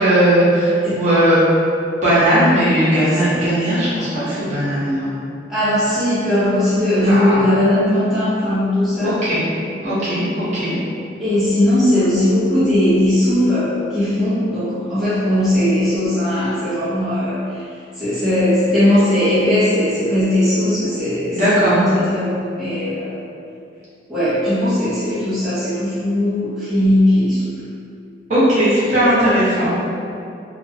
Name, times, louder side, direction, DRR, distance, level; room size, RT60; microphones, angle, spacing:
voice 1, 0.0-1.4 2.0-5.1 7.1-7.4 9.0-9.4 9.8-10.7 21.3-21.8 28.3-29.8, right 1 dB, 40° right, -11 dB, 0.8 m, -17 dB
voice 2, 5.5-9.2 11.2-17.4 18.0-23.2 24.1-27.4, left 1 dB, ahead, -15 dB, 0.6 m, -18 dB
2.4 x 2.1 x 2.7 m, 2.5 s
head